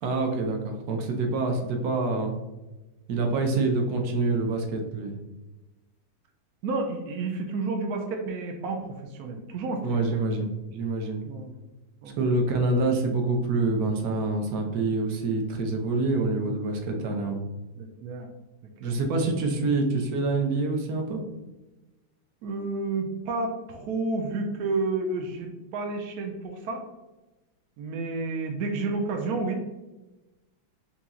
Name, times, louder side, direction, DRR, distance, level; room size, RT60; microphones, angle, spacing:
voice 1, 0.0-2.3 3.1-5.1 9.8-11.2 12.2-17.4 18.8-21.2, right 3 dB, 65° right, 3 dB, 1.0 m, -26 dB
voice 2, 6.6-9.8 10.1-10.2 11.2-11.5 12.0-12.2 17.8-18.3 18.8-19.0 22.4-26.9 27.8-29.8, right 3 dB, 85° right, 3 dB, 0.8 m, -31 dB
4.1 x 2.9 x 3.6 m, 1.1 s
omnidirectional pair, 2.2 m